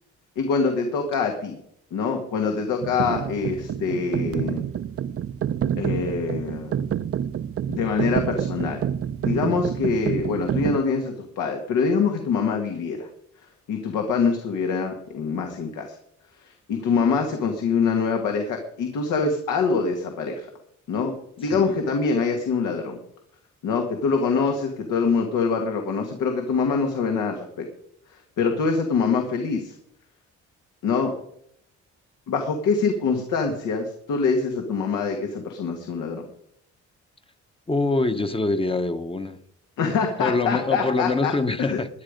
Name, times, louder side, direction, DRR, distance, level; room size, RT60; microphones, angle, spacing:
voice 1, 0.4-1.6 1.9-4.6 5.8-6.8 7.7-8.8 9.2-13.1 13.7-16.0 16.4-20.5 20.9-23.0 23.6-27.7 28.1-29.7 30.8-31.1 32.3-36.3 39.8-41.3 41.6-41.8, left 5 dB, 90° left, 4 dB, 1.9 m, -24 dB
sound 1, 2.8-10.8, right 9 dB, 50° right, 0.6 m, -28 dB
voice 2, 37.7-39.4 40.2-41.9, left 3 dB, 20° left, 9 dB, 0.9 m, -24 dB
18.0 x 10.5 x 5.1 m, 0.72 s
cardioid pair, 90°, 30 cm